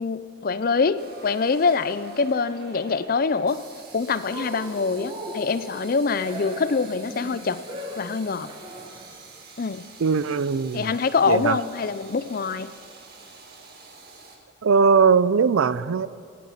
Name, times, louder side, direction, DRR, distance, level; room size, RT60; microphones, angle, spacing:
voice 1, 0.0-3.6 3.9-7.6 8.0-8.5 9.6-9.8 10.7-12.7, left 4 dB, 45° left, 14 dB, 0.5 m, -24 dB
sound 1, 1.0-14.4, right 4 dB, 50° right, 1.8 m, -47 dB
Cheering, 4.2-9.2, equal, 25° right, 1.5 m, -39 dB
voice 2, 10.0-11.0 11.3-11.6 14.6-16.1, right 5 dB, 85° right, 17 dB, 0.4 m, -20 dB
17.0 x 9.4 x 5.8 m, 2.5 s
head